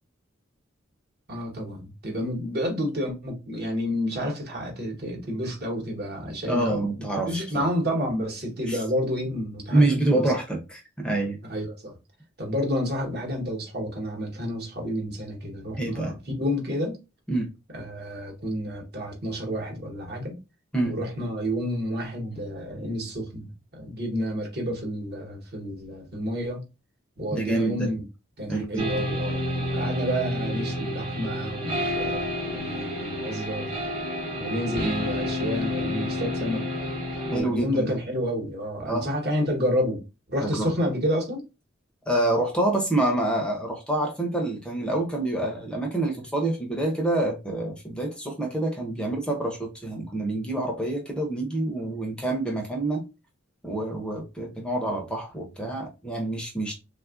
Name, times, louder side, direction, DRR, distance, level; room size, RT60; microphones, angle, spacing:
voice 1, 1.3-9.8 10.1-10.2 11.5-11.9 12.4-17.0 17.7-20.4 20.8-26.6 27.2-28.0 28.4-33.7 34.4-36.6 37.2-40.0 40.3-41.4, equal, 55° right, 1.0 m, -30 dB
voice 2, 6.5-7.7 8.7-8.8 9.7-11.4 15.8-16.1 17.3-17.5 20.7-21.0 27.3-27.9 28.5-28.8 37.3-37.9 38.9-39.1 40.4-40.7 42.1-53.0 53.6-56.7, right 2 dB, 5° left, 0.5 m, -27 dB
sound 1, 28.8-37.4, left 1 dB, 30° right, 1.0 m, -29 dB
3.3 x 2.3 x 2.4 m
head